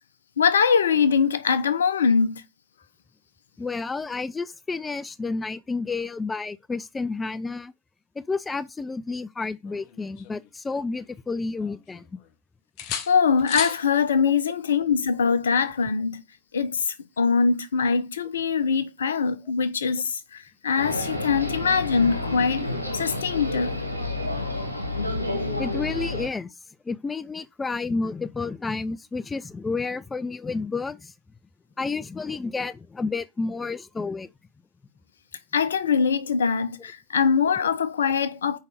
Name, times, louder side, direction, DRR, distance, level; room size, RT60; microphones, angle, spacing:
voice 1, 0.4-2.4 13.1-16.2 16.5-16.8 17.2-20.2 20.6-22.7 22.9-23.7 35.5-38.6, left 6 dB, 65° left, 0.9 m, -22 dB
voice 2, 3.6-7.7 8.2-12.1 14.2-14.4 25.0-25.2 25.6-26.5 26.9-31.1 31.8-34.3, left 4 dB, 15° left, 0.4 m, -30 dB
sound 1, 9.6-11.2 11.6-12.4 12.8-13.8 15.7-15.9, left 9 dB, 45° left, 1.1 m, -36 dB
sound 2, 20.8-26.3, left 2 dB, 85° left, 1.8 m, -29 dB
6.3 x 5.2 x 6.6 m
figure-of-eight pair, 90°, 0 cm